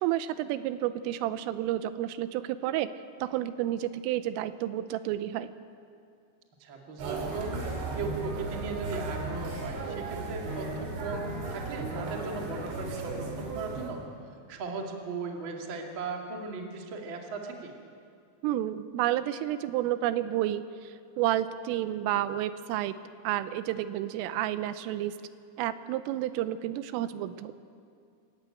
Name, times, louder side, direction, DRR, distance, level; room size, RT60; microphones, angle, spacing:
voice 1, 0.0-2.9 3.2-5.5 18.4-23.0 23.2-25.1 25.6-27.6, right 13 dB, 85° right, 13 dB, 3.2 m, -30 dB
voice 2, 6.6-7.5 7.9-14.0 14.5-17.7, right 4 dB, 45° right, 1 dB, 1.7 m, -37 dB
walking market chiang mai, 7.0-13.9, right 3 dB, 65° right, 5.2 m, -35 dB
26.5 x 14.5 x 8.9 m, 2.3 s
omnidirectional pair, 5.9 m